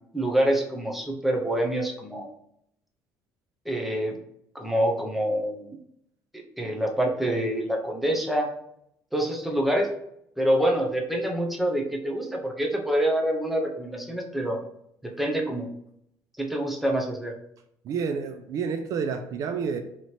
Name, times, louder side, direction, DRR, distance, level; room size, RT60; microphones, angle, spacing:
voice 1, 0.1-2.3 3.7-4.2 4.5-5.8 6.6-8.5 9.1-9.9 10.4-14.6 15.0-15.7 16.4-17.3, right 1 dB, ahead, 1 dB, 0.6 m, -26 dB
voice 2, 17.8-19.8, right 6 dB, 55° right, 8 dB, 0.4 m, -29 dB
3.1 x 2.8 x 4.2 m, 0.75 s
cardioid pair, 135°, 7 cm